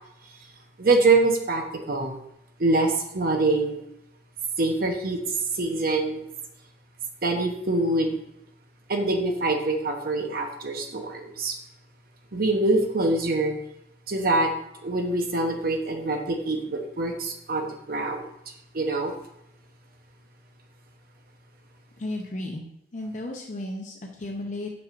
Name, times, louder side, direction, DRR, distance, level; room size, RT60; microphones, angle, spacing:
voice 1, 0.8-2.2 2.6-3.8 4.6-5.2 5.6-6.2 7.2-8.2 8.9-11.5 12.3-13.5 14.1-14.5 14.8-18.3 18.7-19.1, right 2 dB, 55° right, 4 dB, 0.9 m, -24 dB
voice 2, 22.0-22.6 22.9-24.7, left 1 dB, 45° left, 1 dB, 0.7 m, -34 dB
7.5 x 6.2 x 2.5 m, 0.80 s
head